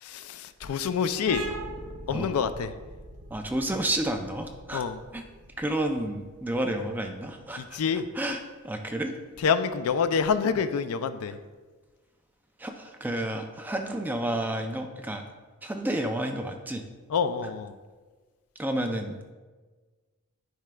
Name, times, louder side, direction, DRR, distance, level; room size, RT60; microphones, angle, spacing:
voice 1, 0.0-1.4 2.1-2.7 4.7-5.0 7.6-8.1 9.4-11.4 17.1-17.7, left 6 dB, 75° left, 12 dB, 0.4 m, -27 dB
sound 1, 1.3-8.6, right 2 dB, 65° right, 0.7 m, -42 dB
voice 2, 3.3-4.8 5.1-5.2 5.6-7.8 8.1-9.1 12.6-15.2 15.6-16.8 18.6-19.2, right 1 dB, 10° right, 4 dB, 0.3 m, -30 dB
9.2 x 4.8 x 2.2 m, 1.3 s
head